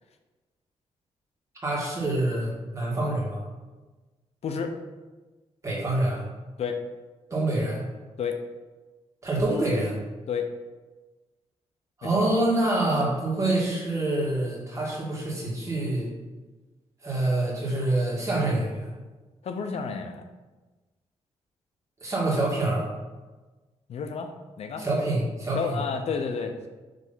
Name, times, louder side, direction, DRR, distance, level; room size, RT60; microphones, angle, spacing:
voice 1, 1.6-3.4 5.6-6.2 7.3-7.8 9.2-10.0 12.0-16.1 17.0-18.9 22.0-22.9 24.8-25.8, right 2 dB, 25° right, -4 dB, 2.0 m, -26 dB
voice 2, 4.4-4.7 6.6-6.8 8.2-8.4 10.3-10.5 12.0-12.3 19.4-20.2 23.9-24.3 24.6-24.8 25.5-26.7, left 6 dB, 70° left, 6 dB, 0.7 m, -30 dB
5.2 x 3.4 x 5.6 m, 1.2 s
cardioid pair, 110°, 11 cm